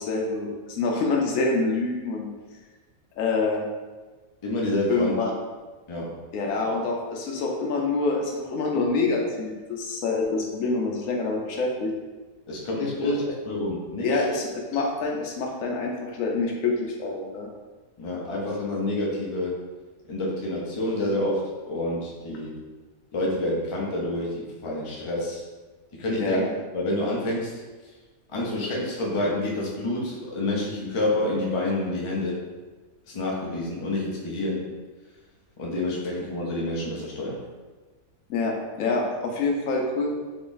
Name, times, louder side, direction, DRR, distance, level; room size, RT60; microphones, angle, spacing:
voice 1, 0.0-2.3 3.2-3.7 4.9-5.3 6.3-11.9 13.0-13.3 14.0-17.5 26.2-26.4 38.3-38.5 38.8-40.1, left 3 dB, 70° left, 0 dB, 0.9 m, -26 dB
voice 2, 4.4-5.1 5.9-6.1 12.5-14.1 18.0-19.6 20.1-22.5 23.1-25.4 26.0-26.4 26.7-27.6 28.3-32.4 33.1-34.6 35.6-37.4, left 1 dB, 35° left, -3 dB, 0.4 m, -28 dB
3.7 x 3.1 x 2.5 m, 1.3 s
omnidirectional pair, 1.5 m